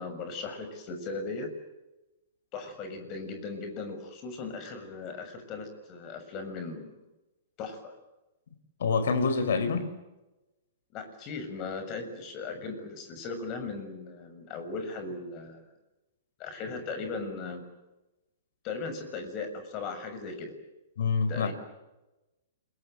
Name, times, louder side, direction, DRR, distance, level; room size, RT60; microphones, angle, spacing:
voice 1, 0.0-1.5 2.5-6.9 7.6-7.9 10.9-15.6 16.4-17.6 18.6-20.5 21.3-21.5, left 4 dB, 35° left, 8 dB, 6.8 m, -38 dB
voice 2, 8.8-9.9 21.0-21.5, left 5 dB, 60° left, 11 dB, 4.8 m, -26 dB
29.5 x 22.5 x 7.9 m, 1.0 s
figure-of-eight pair, 110°, 0 cm